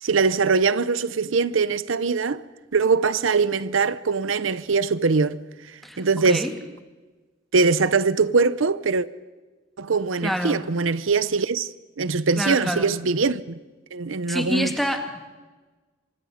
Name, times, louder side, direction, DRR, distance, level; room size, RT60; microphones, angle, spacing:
voice 1, 0.0-2.4 2.7-5.4 6.0-6.5 7.5-9.1 9.8-11.7 12.0-13.6 13.9-14.7, right 4 dB, 85° right, 0.7 m, -22 dB
voice 2, 5.8-6.5 10.2-10.6 12.4-12.9 14.3-15.3, equal, ahead, 2.3 m, -27 dB
26.0 x 24.0 x 5.2 m
head